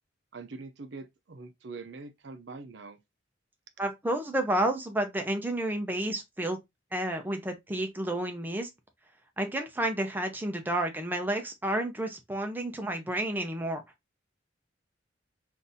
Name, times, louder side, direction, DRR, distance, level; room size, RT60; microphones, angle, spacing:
voice 1, 0.3-3.0, right 3 dB, 65° right, 0.6 m, -43 dB
voice 2, 3.8-6.6 6.9-8.7 9.4-13.8, right 1 dB, 10° right, 0.5 m, -30 dB
3.9 x 2.6 x 2.6 m
head